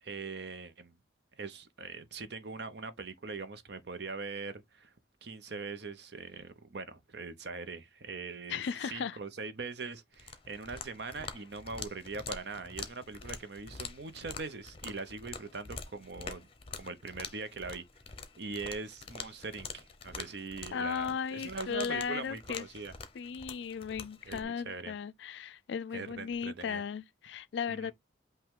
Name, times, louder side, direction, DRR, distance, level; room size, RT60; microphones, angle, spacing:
voice 1, 0.0-1.0 1.4-4.9 5.2-16.5 16.8-17.8 18.4-22.9 24.2-24.9 25.9-26.8 27.7-27.9, right 4 dB, 60° right, 0.8 m, -42 dB
voice 2, 8.5-9.2 20.7-22.7 23.1-27.9, left 6 dB, 70° left, 0.4 m, -36 dB
sound 1, 10.1-24.4, left 5 dB, 30° left, 0.7 m, -46 dB
5.6 x 2.3 x 3.6 m
head